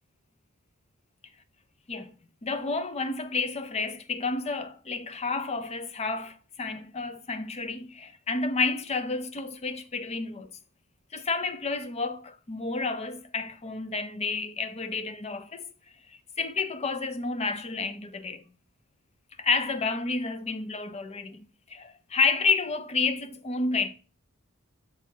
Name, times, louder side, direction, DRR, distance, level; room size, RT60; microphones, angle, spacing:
voice 1, 2.4-10.5 11.1-15.7 16.1-18.5 19.4-23.9, left 4 dB, 30° left, 0.6 m, -30 dB
7.1 x 3.5 x 4.3 m
head